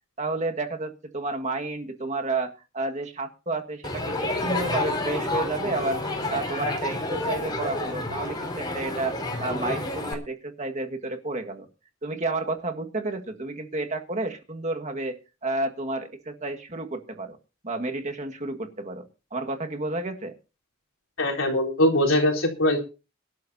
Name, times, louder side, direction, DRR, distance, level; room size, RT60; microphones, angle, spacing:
voice 1, 0.2-6.0 6.3-11.7 12.0-17.4 17.6-19.0 19.3-20.4, right 2 dB, 35° right, 5 dB, 1.8 m, -31 dB
Crowd, 3.8-10.1, left 2 dB, 20° left, 3.6 m, -29 dB
voice 2, 21.2-22.8, left 1 dB, 80° left, 0 dB, 3.9 m, -22 dB
23.0 x 12.0 x 2.8 m, 0.31 s
head